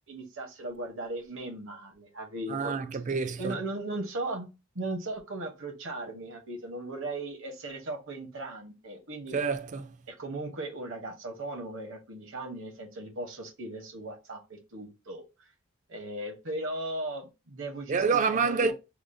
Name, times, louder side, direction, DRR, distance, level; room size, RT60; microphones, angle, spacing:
voice 1, 0.1-2.8 3.4-4.5 4.7-9.4 10.1-15.2 15.9-18.7, right 2 dB, 65° right, 0.9 m, -37 dB
voice 2, 2.5-3.6 9.3-10.0 17.9-18.7, right 5 dB, 35° right, 0.4 m, -27 dB
4.8 x 2.0 x 2.6 m
head